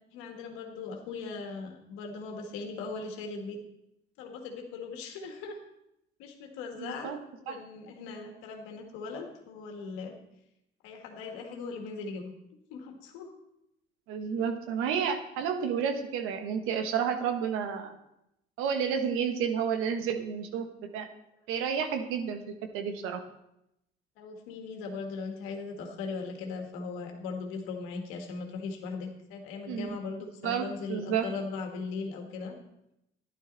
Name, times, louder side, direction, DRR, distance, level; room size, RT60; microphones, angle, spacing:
voice 1, 0.1-3.6 4.2-5.6 6.2-7.1 7.4-10.2 10.8-12.3 12.7-13.3 24.2-32.5, left 4 dB, 85° left, 3 dB, 1.8 m, -39 dB
voice 2, 6.8-7.2 7.5-7.6 14.1-17.9 18.6-21.1 21.5-23.2 29.7-30.0 30.4-31.3, right 7 dB, 85° right, 7 dB, 1.3 m, -31 dB
11.5 x 11.0 x 4.1 m, 0.84 s
supercardioid pair, 75°, 21 cm